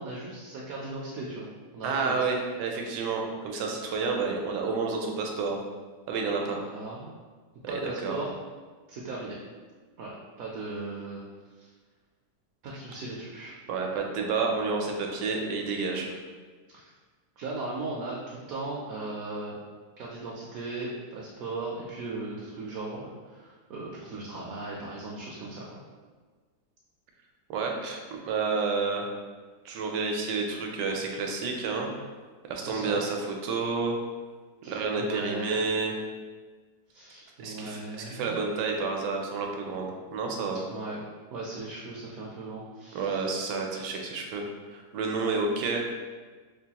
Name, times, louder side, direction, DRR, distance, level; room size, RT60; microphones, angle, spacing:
voice 1, 0.0-2.3 6.5-7.1 7.7-8.3 8.9-9.4 10.0-11.2 11.6-11.7 12.6-13.6 16.7-16.9 17.4-19.6 20.0-25.8 32.7-33.0 34.6-35.6 36.9-38.4 40.7-41.0 41.3-43.4, right 2 dB, 70° right, -3 dB, 0.9 m, -37 dB
voice 2, 1.8-5.6 6.1-6.7 7.7-8.2 13.7-16.2 27.5-29.0 29.6-31.9 32.5-34.0 34.7-36.0 37.4-40.6 42.9-45.8, right 4 dB, 85° right, 1 dB, 1.2 m, -30 dB
4.6 x 2.2 x 2.8 m, 1.4 s
omnidirectional pair, 1.8 m